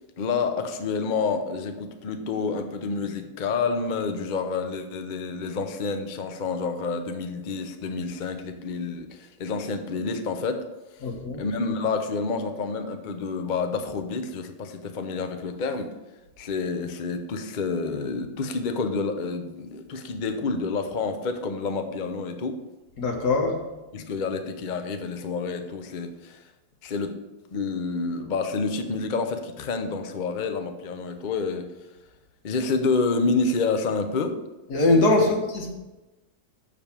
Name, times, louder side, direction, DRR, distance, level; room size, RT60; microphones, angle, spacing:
voice 1, 0.2-10.7 10.9-11.1 11.4-15.9 16.4-22.6 23.9-26.5 26.8-27.1 27.5-31.9 32.4-34.4 35.2-35.3, left 4 dB, 45° left, 7 dB, 0.6 m, -28 dB
voice 2, 11.0-11.4 23.0-23.6 34.7-35.7, left 2 dB, 75° left, 1 dB, 2.0 m, -22 dB
7.1 x 5.1 x 7.2 m, 1.1 s
omnidirectional pair, 1.7 m